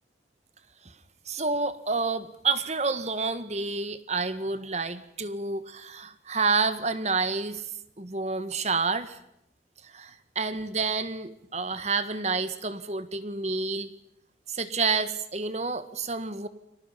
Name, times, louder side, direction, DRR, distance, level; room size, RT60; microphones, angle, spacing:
voice 1, 1.3-7.6 8.0-9.2 9.9-13.9 14.5-16.5, right 4 dB, 40° right, 12 dB, 1.5 m, -29 dB
29.5 x 25.0 x 5.7 m, 0.77 s
head